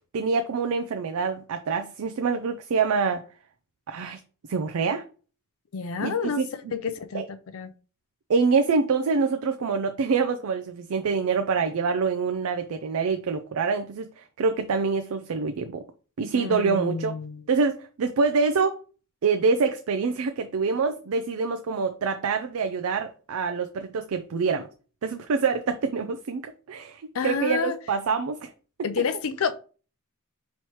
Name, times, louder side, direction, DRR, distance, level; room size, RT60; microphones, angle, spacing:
voice 1, 0.1-3.2 3.9-4.2 4.5-5.0 6.0-6.5 7.1-7.3 8.3-15.8 16.2-17.2 17.5-18.8 19.2-24.7 25.0-28.5, right 5 dB, 75° right, 0.4 m, -26 dB
voice 2, 5.7-6.4 6.7-7.2 7.5-7.7 16.3-17.4 27.1-27.7 28.8-29.6, left 5 dB, 70° left, 0.5 m, -29 dB
5.6 x 3.1 x 3.0 m
head